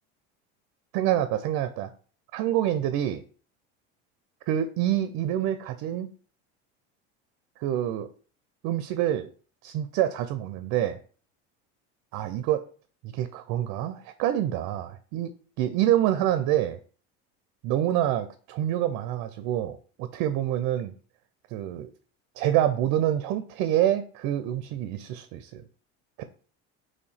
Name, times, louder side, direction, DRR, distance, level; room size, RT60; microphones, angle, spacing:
voice 1, 0.9-1.9 2.3-3.2 4.5-6.1 7.6-8.1 8.6-9.3 9.6-11.0 12.1-12.6 13.0-15.3 15.6-16.8 17.6-20.9 21.5-21.9 22.4-25.6 26.2-26.3, right 12 dB, 60° right, 10 dB, 0.5 m, -26 dB
3.1 x 2.8 x 4.2 m, 0.42 s
supercardioid pair, 105°, 31 cm